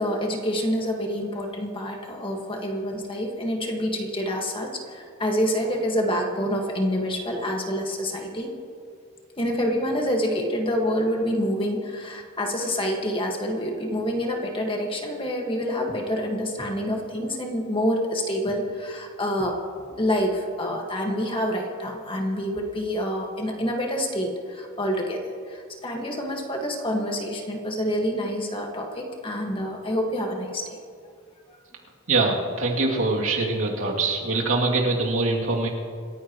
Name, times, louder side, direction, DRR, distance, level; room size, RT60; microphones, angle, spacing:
voice 1, 0.0-8.5 9.4-19.6 20.0-30.8, equal, 25° left, 1 dB, 1.8 m, -27 dB
voice 2, 32.1-35.7, right 3 dB, 70° right, -2 dB, 2.8 m, -23 dB
27.0 x 15.0 x 3.1 m, 2.2 s
head